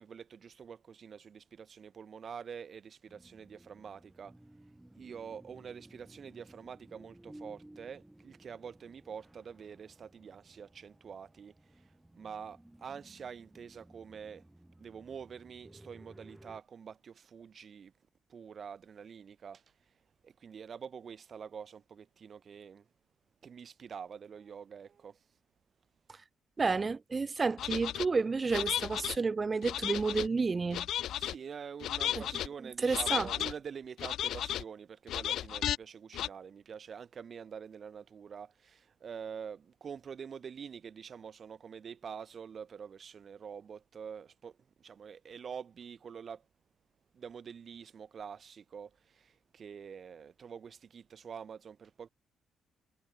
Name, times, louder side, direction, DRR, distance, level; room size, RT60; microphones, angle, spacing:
voice 1, 0.0-4.4 5.0-14.4 14.8-17.9 18.3-22.9 23.4-25.4 31.1-46.4 47.1-52.1, right 7 dB, 50° right, 1.7 m, -46 dB
sound 1, 3.1-16.6, right 1 dB, 10° right, 5.3 m, -57 dB
voice 2, 26.6-30.9 32.1-32.3 32.6-33.3, right 4 dB, 30° right, 0.8 m, -31 dB
sound 2, 27.6-28.1 28.5-29.2 29.6-30.3 30.7-31.3 31.8-32.5 32.9-33.5 34.0-34.6 35.1-35.8 36.1-36.3, left 12 dB, 75° left, 0.5 m, -34 dB
cardioid pair, 90°, 0 cm